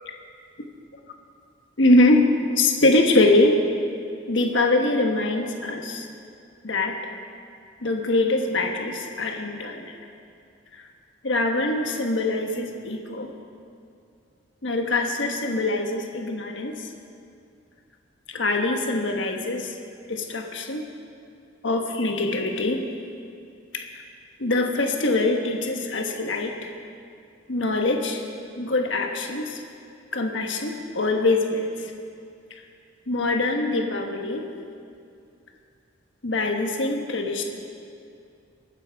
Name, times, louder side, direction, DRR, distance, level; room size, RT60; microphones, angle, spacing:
voice 1, 1.8-3.6 4.3-6.1 6.6-7.0 7.8-10.0 10.7-10.9 11.2-13.3 14.6-16.9 18.3-19.8 20.1-20.9 21.6-22.8 23.7-24.0 24.4-26.7 27.5-28.2 28.6-29.6 30.1-31.9 33.1-34.5 36.2-37.4, left 2 dB, 70° left, 3 dB, 1.3 m, -23 dB
22.0 x 9.1 x 4.8 m, 2.4 s
head